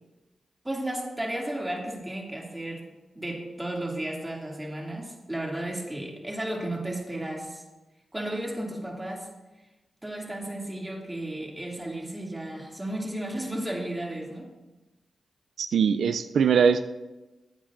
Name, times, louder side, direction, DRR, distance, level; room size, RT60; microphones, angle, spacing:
voice 1, 0.6-2.9 3.2-7.6 8.1-9.3 10.0-14.5, right 1 dB, 15° right, -1 dB, 2.4 m, -33 dB
voice 2, 15.6-16.8, right 6 dB, 85° right, 9 dB, 0.3 m, -21 dB
14.0 x 8.7 x 2.5 m, 1.1 s
cardioid pair, 55°, 0 cm